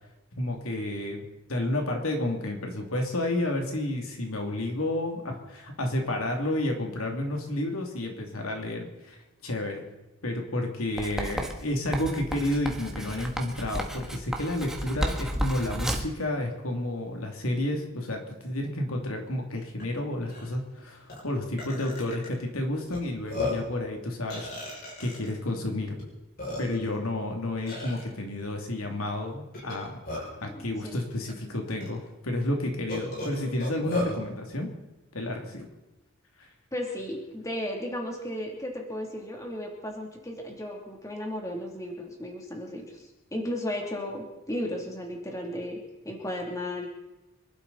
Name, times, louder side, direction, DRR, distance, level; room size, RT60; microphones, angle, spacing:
voice 1, 0.4-1.2 1.5-9.2 9.4-9.8 10.2-24.5 25.0-26.0 26.6-30.0 30.4-34.7 35.1-35.7 36.4-36.5, left 1 dB, 80° left, 2 dB, 2.7 m, -31 dB
Writing, 11.0-16.2, equal, ahead, 1.4 m, -33 dB
Burping eructation, 19.8-19.9 20.3-20.5 21.1-21.2 21.6-22.3 22.9-23.0 23.3-23.7 24.3-25.3 26.0-26.1 26.4-26.9 27.7-28.0 29.5-30.4 31.3-31.4 31.8-31.9 32.9-34.2, left 2 dB, 45° left, 6.3 m, -34 dB
voice 2, 30.5-31.0 36.7-46.9, left 1 dB, 15° left, 0 dB, 2.9 m, -35 dB
26.5 x 12.0 x 4.2 m, 1.0 s
head